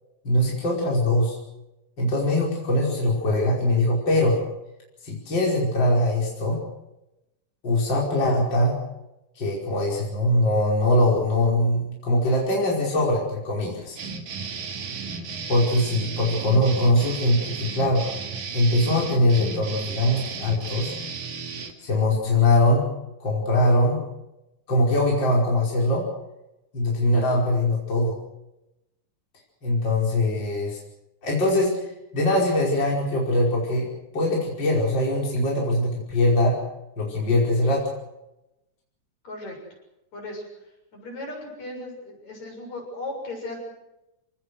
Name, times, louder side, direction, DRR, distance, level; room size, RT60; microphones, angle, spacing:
voice 1, 0.2-1.4 2.0-4.4 5.0-6.6 7.6-8.7 9.4-14.0 15.5-18.0 18.5-20.9 21.8-22.9 23.2-24.0 24.7-26.0 26.7-28.1 29.6-30.8 31.2-31.7 32.1-33.9 34.1-36.6 37.0-37.9, left 1 dB, 35° left, -3 dB, 5.8 m, -22 dB
sound 1, 14.0-21.7, right 5 dB, 80° right, 3.7 m, -34 dB
voice 2, 39.2-39.6 40.1-43.6, left 2 dB, 60° left, 0 dB, 8.2 m, -37 dB
27.5 x 19.0 x 6.5 m, 0.93 s
omnidirectional pair, 3.5 m